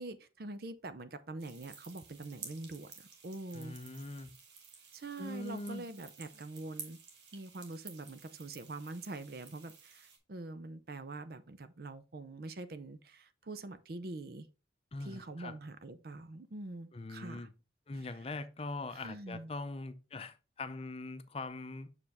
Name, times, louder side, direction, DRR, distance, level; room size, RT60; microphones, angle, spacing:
voice 1, 0.0-3.7 4.9-7.0 7.3-14.5 15.0-17.5 19.0-19.5, right 2 dB, 55° right, 0.6 m, -44 dB
sound 1, 1.4-10.2, right 6 dB, 70° right, 1.5 m, -53 dB
voice 2, 3.5-4.3 5.2-5.9 14.9-15.6 16.9-17.5 17.9-21.9, left 2 dB, 30° left, 0.5 m, -42 dB
6.5 x 4.9 x 3.5 m
head